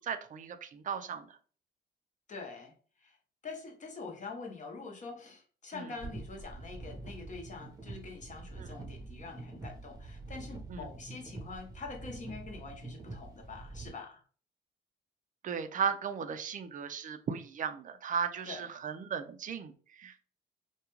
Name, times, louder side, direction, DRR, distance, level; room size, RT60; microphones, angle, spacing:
voice 1, 0.0-1.4 5.7-5.9 8.6-8.7 10.7-10.9 15.4-20.2, right 6 dB, 40° right, 9 dB, 0.4 m, -36 dB
voice 2, 2.3-2.7 3.0-3.2 3.4-14.2 18.5-18.7, left 4 dB, 40° left, 1 dB, 0.8 m, -45 dB
sound 1, 6.0-13.9, right 3 dB, 20° right, 0.7 m, -46 dB
2.3 x 2.2 x 2.9 m, 0.42 s
cardioid pair, 90°, 20 cm